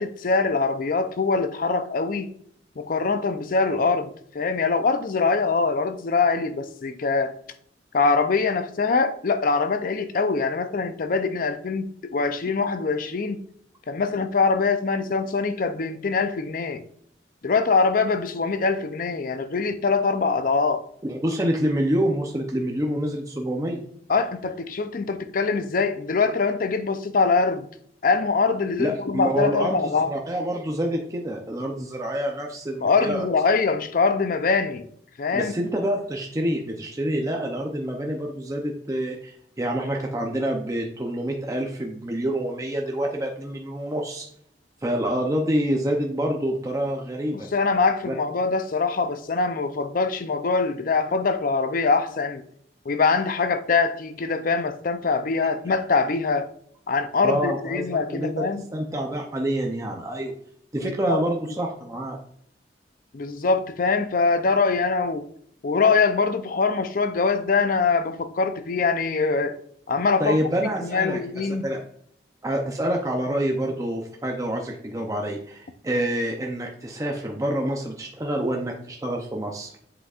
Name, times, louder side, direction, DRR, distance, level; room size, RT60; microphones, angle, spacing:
voice 1, 0.0-2.3 2.8-7.3 7.9-13.4 13.9-16.8 17.4-20.8 24.1-27.7 28.0-30.1 32.8-34.9 35.2-35.5 47.3-52.4 52.9-56.5 56.9-58.6 60.8-61.2 63.1-65.2 65.6-69.6 69.9-70.4 70.8-71.6, left 4 dB, 50° left, 0.5 m, -23 dB
voice 2, 21.0-23.9 28.8-33.3 35.3-44.3 44.8-47.5 48.0-48.1 57.2-60.3 60.7-62.2 70.2-71.2 71.6-71.8 72.4-79.7, right 1 dB, 20° right, 0.6 m, -27 dB
7.8 x 6.2 x 2.4 m
head